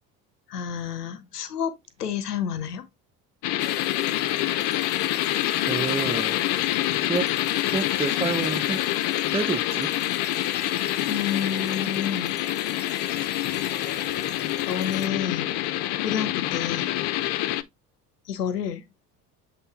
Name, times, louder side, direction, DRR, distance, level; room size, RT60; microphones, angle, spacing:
voice 1, 0.5-1.7 2.0-2.9 11.1-12.4 14.7-15.5 16.0-16.9 18.3-18.8, left 8 dB, 90° left, 0.8 m, -29 dB
sound 1, 3.4-17.6, left 14 dB, 60° left, 0.8 m, -26 dB
sound 2, 3.6-15.1, left 6 dB, 20° left, 0.9 m, -39 dB
voice 2, 5.7-6.5 6.9-7.3 7.6-8.8 9.1-9.9, right 5 dB, 15° right, 0.5 m, -29 dB
7.9 x 3.5 x 3.5 m
hypercardioid pair, 60°, 46 cm